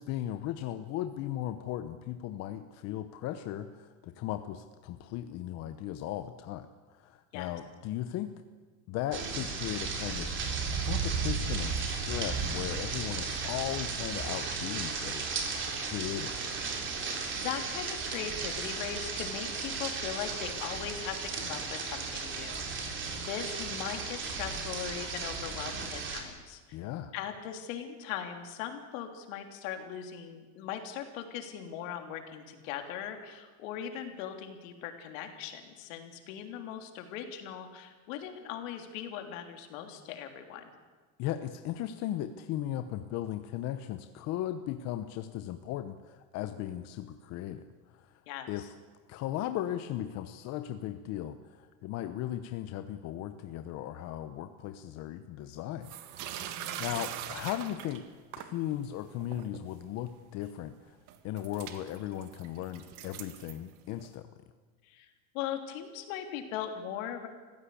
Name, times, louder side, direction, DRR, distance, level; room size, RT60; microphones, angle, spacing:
voice 1, 0.0-8.3 8.9-15.6 15.8-16.5 26.7-27.1 41.2-47.6 47.9-48.1 48.5-48.7 49.1-55.9 56.2-58.1 58.4-61.0 61.2-64.3, left 12 dB, 40° left, 9 dB, 0.9 m, -37 dB
sound 1, 9.1-26.2, right 5 dB, 25° right, 3.4 m, -35 dB
voice 2, 17.3-26.8 27.1-40.7 48.3-48.7 56.4-56.8 64.8-67.3, left 9 dB, 65° left, 5 dB, 3.3 m, -40 dB
sound 2, 55.8-58.6 59.1-59.7 60.4-60.5 61.1-64.1, right 11 dB, 45° right, 1.8 m, -42 dB
25.0 x 16.0 x 8.4 m, 1.4 s
cardioid pair, 165°, 42 cm